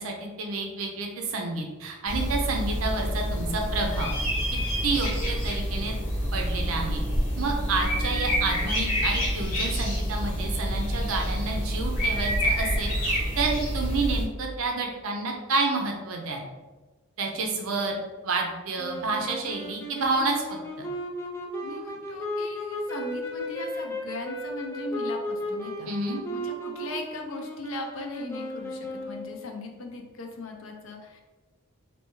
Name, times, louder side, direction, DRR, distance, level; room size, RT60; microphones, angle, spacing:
voice 1, 0.0-4.1 4.8-6.0 6.3-7.0 7.4-16.4 17.2-20.4 20.8-20.9 25.9-26.2, right 3 dB, 75° right, 1 dB, 0.5 m, -29 dB
sound 1, 2.1-14.2, equal, 35° left, 1.2 m, -27 dB
sound 2, 18.8-29.5, equal, 10° left, 0.4 m, -35 dB
voice 2, 21.6-25.9 26.3-31.2, left 2 dB, 65° left, 3 dB, 0.6 m, -38 dB
3.4 x 2.6 x 3.0 m, 1.2 s
head